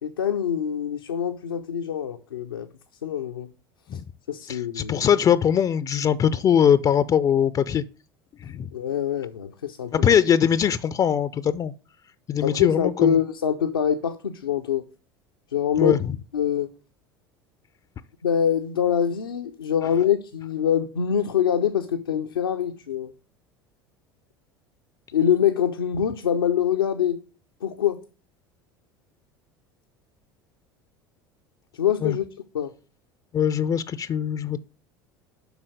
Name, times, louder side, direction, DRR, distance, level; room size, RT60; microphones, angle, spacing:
voice 1, 0.0-2.7 3.0-3.5 3.9-4.0 4.3-5.0 8.7-9.9 12.4-14.8 15.5-16.0 16.3-16.7 18.2-23.1 25.1-27.2 27.6-28.0 31.7-32.3 32.5-32.7, left 9 dB, 80° left, 0.6 m, -24 dB
voice 2, 4.5-7.8 8.4-8.7 9.9-11.7 12.3-13.2 15.8-16.1 32.0-32.2 33.3-34.6, left 8 dB, 30° left, 0.4 m, -21 dB
8.0 x 5.6 x 6.4 m
figure-of-eight pair, 70°, 12 cm